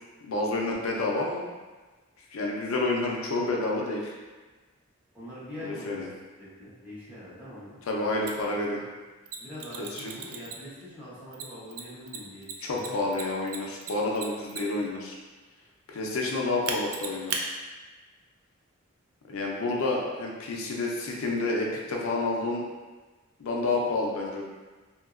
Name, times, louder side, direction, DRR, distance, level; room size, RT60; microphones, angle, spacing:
voice 1, 0.2-1.4 2.3-4.1 5.6-6.1 7.9-8.8 9.8-10.1 12.6-15.2 15.9-17.5 19.3-22.6 23.4-24.4, left 2 dB, 80° left, -1 dB, 0.5 m, -29 dB
voice 2, 5.1-6.0 6.4-8.1 8.4-8.6 9.4-13.1, left 1 dB, 10° right, -11 dB, 0.9 m, -43 dB
Mechanisms, 8.3-8.4 9.3-10.8 11.3-14.9 16.7-17.4, right 6 dB, 90° right, 0.4 m, -35 dB
2.8 x 2.7 x 2.4 m, 1.3 s
head